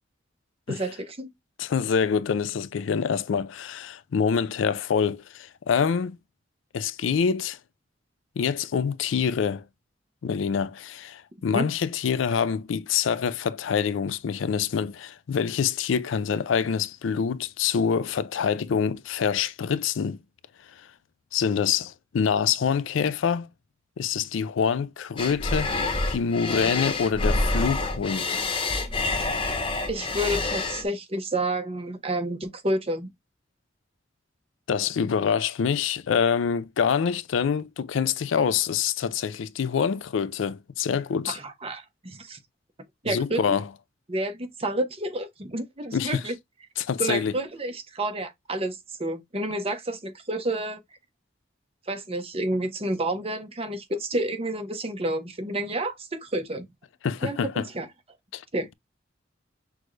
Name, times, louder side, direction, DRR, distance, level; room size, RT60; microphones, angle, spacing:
voice 1, 0.7-1.3 11.5-11.7 29.9-33.1 41.3-42.4 43.0-43.6 44.1-46.3 47.0-50.8 51.9-56.7 57.2-57.9 58.5-58.7, right 1 dB, 30° right, 0.9 m, -30 dB
voice 2, 1.6-6.2 6.7-7.6 8.4-9.6 10.2-20.2 20.8-20.9 21.3-23.5 24.0-25.7 26.1-28.5 34.7-41.4 43.1-43.6 45.9-46.2 46.8-47.3 57.0-57.7 58.3-58.4, left 6 dB, 85° left, 0.4 m, -26 dB
sound 1, 25.2-30.8, left 2 dB, 30° left, 0.9 m, -27 dB
6.1 x 2.3 x 3.2 m
head